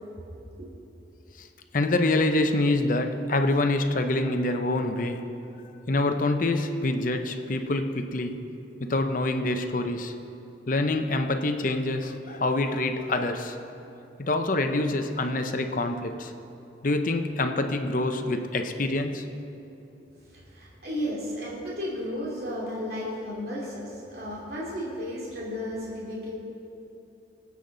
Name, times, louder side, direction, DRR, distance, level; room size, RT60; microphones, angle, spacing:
voice 1, 1.7-5.2 5.9-8.4 8.8-10.1 10.7-13.6 14.2-16.3 16.8-19.3, left 2 dB, 50° left, 6 dB, 0.7 m, -26 dB
voice 2, 20.3-26.3, equal, 60° right, -5 dB, 2.7 m, -33 dB
20.5 x 8.4 x 3.9 m, 2.9 s
head